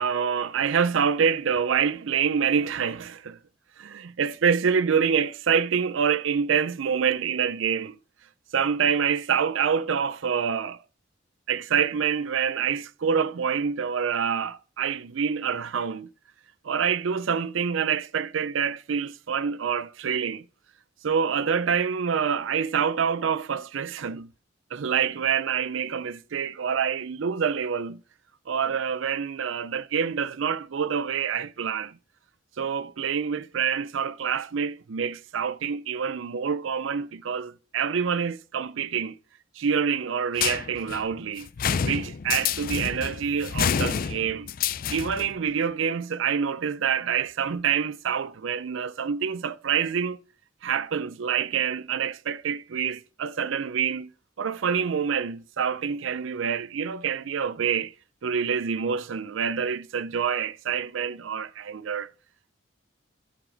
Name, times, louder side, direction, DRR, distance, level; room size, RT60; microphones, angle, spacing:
voice 1, 0.0-3.4 3.8-8.0 8.5-10.8 11.5-16.1 16.6-20.4 21.0-24.3 24.7-28.0 28.5-31.9 32.6-39.2 39.6-41.5 41.8-44.5 44.9-50.2 50.6-54.1 54.4-57.9 58.2-62.1, right 7 dB, 70° right, 0.5 m, -26 dB
sound 1, 40.4-45.3, left 7 dB, 45° left, 0.4 m, -28 dB
13.0 x 4.9 x 3.9 m
head